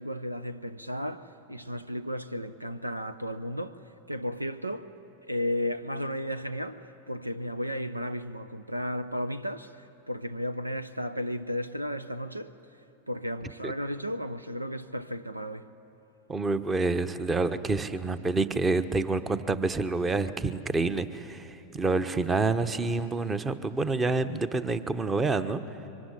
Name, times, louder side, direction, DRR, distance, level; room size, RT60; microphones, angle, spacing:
voice 1, 0.0-3.8 4.1-4.9 5.3-12.5 13.1-15.7, equal, 85° right, 0.7 m, -34 dB
voice 2, 16.3-25.6, right 3 dB, 15° right, 1.1 m, -28 dB
25.0 x 23.5 x 9.9 m
figure-of-eight pair, 90°, 0 cm